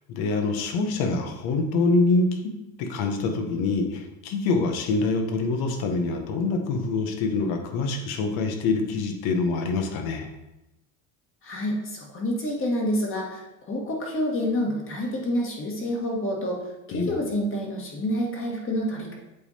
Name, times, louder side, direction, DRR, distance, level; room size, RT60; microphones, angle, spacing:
voice 1, 0.1-2.5 2.8-10.3 16.9-17.1, left 3 dB, 60° left, 4 dB, 1.3 m, -25 dB
voice 2, 11.4-19.1, equal, 30° left, -1 dB, 1.9 m, -28 dB
8.2 x 3.6 x 4.3 m, 0.93 s
supercardioid pair, 115°, 42 cm